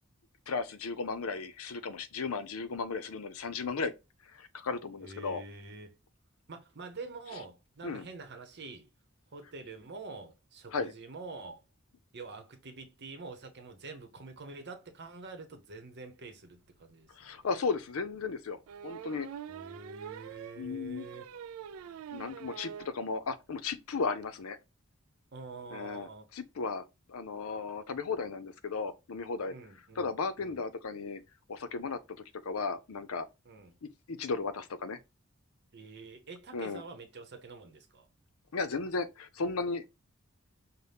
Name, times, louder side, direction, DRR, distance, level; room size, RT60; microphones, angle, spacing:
voice 1, 0.5-3.9 4.3-5.4 7.8-8.0 10.7-10.9 17.1-19.3 20.6-21.1 22.1-24.6 25.7-29.5 30.0-31.2 31.5-32.0 32.4-33.3 33.8-35.0 36.5-36.8 38.5-39.8, left 4 dB, 85° left, 0.6 m, -35 dB
voice 2, 5.0-6.0 6.5-8.9 9.3-11.6 12.1-17.3 19.5-21.3 25.3-26.3 29.5-30.1 30.4-30.6 33.4-33.8 35.7-38.1, right 3 dB, 55° right, 0.8 m, -46 dB
sound 1, 16.9-17.0 17.4-17.5 18.7-23.0 23.3-23.4 23.7-23.8 24.0-24.2, right 8 dB, 85° right, 0.3 m, -45 dB
5.5 x 2.1 x 3.4 m
head